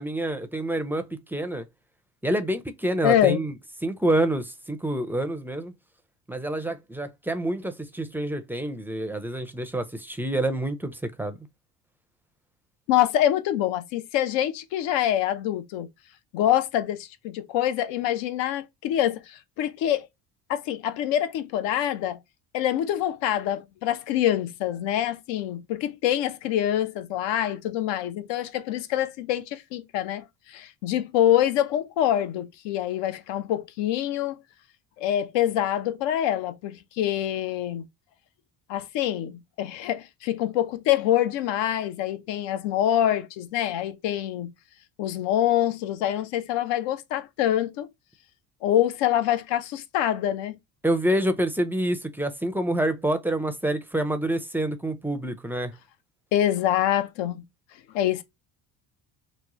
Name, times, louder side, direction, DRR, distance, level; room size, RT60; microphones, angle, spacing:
voice 1, 0.0-1.7 2.2-3.5 3.8-5.7 6.3-11.4 50.8-55.7, right 1 dB, 5° right, 0.4 m, -27 dB
voice 2, 3.0-3.4 12.9-15.9 16.3-20.1 20.5-22.2 22.5-34.4 35.0-37.8 38.7-44.5 45.0-47.9 48.6-50.6 56.3-57.4 57.9-58.2, left 11 dB, 75° left, 0.8 m, -25 dB
3.1 x 2.1 x 3.6 m
supercardioid pair, 90°, 45 cm